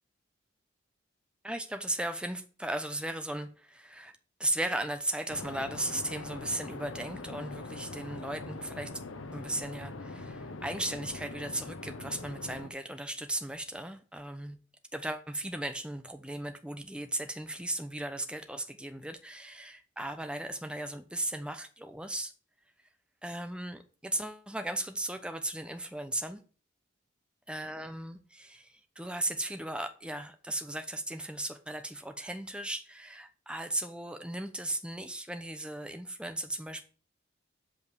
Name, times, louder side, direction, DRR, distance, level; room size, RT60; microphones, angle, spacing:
voice 1, 1.4-8.9 9.3-14.6 14.9-22.3 23.2-26.4 27.5-36.8, right 1 dB, 5° right, 0.8 m, -36 dB
sound 1, 5.3-12.7, left 3 dB, 80° left, 0.9 m, -42 dB
8.1 x 5.2 x 6.8 m
head